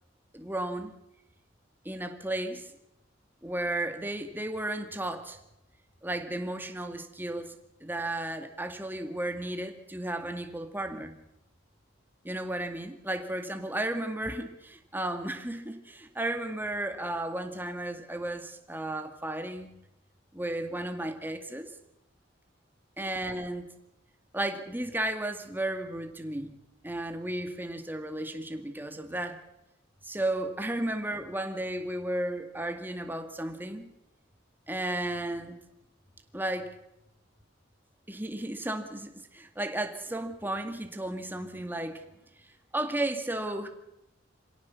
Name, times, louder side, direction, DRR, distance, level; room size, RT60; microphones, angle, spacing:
voice 1, 0.3-0.9 1.8-2.7 3.4-5.4 6.0-7.5 7.8-11.2 12.2-19.7 20.3-21.7 23.0-23.7 24.3-26.5 26.8-29.4 30.0-33.9 34.7-35.6 36.3-36.7 38.1-42.0 42.7-43.7, right 1 dB, 10° right, 6 dB, 2.2 m, -34 dB
26.5 x 17.0 x 7.1 m, 0.86 s
head